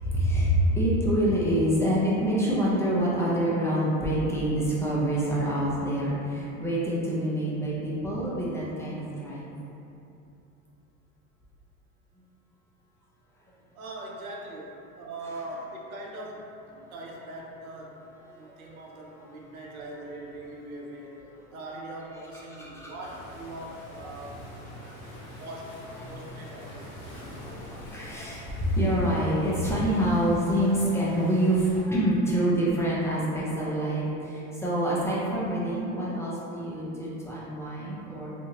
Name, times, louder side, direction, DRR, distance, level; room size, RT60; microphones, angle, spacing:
voice 1, 0.0-9.5 18.4-18.5 21.5-21.6 22.6-22.9 24.7-25.3 26.0-26.5 27.4-38.3, right 1 dB, 5° left, -8 dB, 0.6 m, -26 dB
voice 2, 13.7-16.5 16.9-18.0 18.3-21.1 21.5-24.4 25.4-26.8, right 1 dB, 90° right, -2 dB, 0.6 m, -41 dB
Waves surf, 23.0-31.8, left 1 dB, 40° left, 0.9 m, -46 dB
2.7 x 2.6 x 2.8 m, 2.8 s
hypercardioid pair, 90°, 42 cm